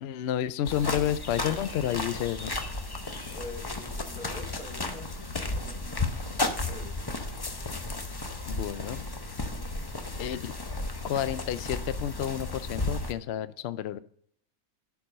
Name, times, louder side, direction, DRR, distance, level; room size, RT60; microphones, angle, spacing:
voice 1, 0.0-2.5 8.5-9.0 10.2-10.5 11.0-14.0, left 10 dB, 70° left, 14 dB, 0.6 m, -30 dB
sound 1, 0.7-13.1, left 2 dB, 25° left, 0.5 m, -34 dB
voice 2, 3.3-5.9 6.7-7.1, left 3 dB, 85° left, 0 dB, 3.1 m, -45 dB
11.0 x 4.7 x 6.4 m, 0.65 s
omnidirectional pair, 1.6 m